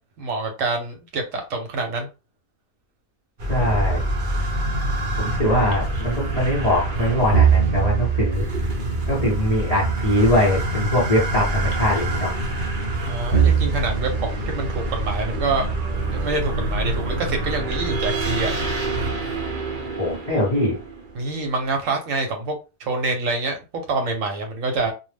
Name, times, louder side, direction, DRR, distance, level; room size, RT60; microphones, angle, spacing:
voice 1, 0.2-2.1 5.4-5.5 13.0-15.7 16.1-18.5 21.1-23.6 23.9-24.9, right 3 dB, 65° right, 1.0 m, -26 dB
sound 1, 3.4-21.3, right 3 dB, 45° right, 0.7 m, -24 dB
voice 2, 3.5-4.0 5.2-8.4 9.1-12.3 20.0-20.7, equal, 40° left, 0.6 m, -22 dB
2.5 x 2.0 x 3.2 m
omnidirectional pair, 1.5 m